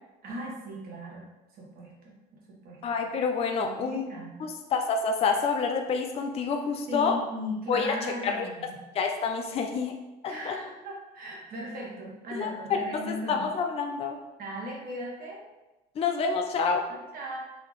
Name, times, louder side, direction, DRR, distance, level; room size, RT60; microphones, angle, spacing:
voice 1, 0.2-1.3 1.5-2.1 2.5-2.8 3.6-4.4 6.9-8.8 10.3-13.4 14.4-15.5 16.9-17.4, equal, 60° right, -3 dB, 1.2 m, -38 dB
voice 2, 2.8-4.1 4.4-7.2 7.7-8.5 8.9-10.0 10.2-10.6 12.4-14.2 16.0-16.8, left 5 dB, 35° left, 4 dB, 0.4 m, -28 dB
4.2 x 2.8 x 3.0 m, 1.0 s
cardioid pair, 110°, 17 cm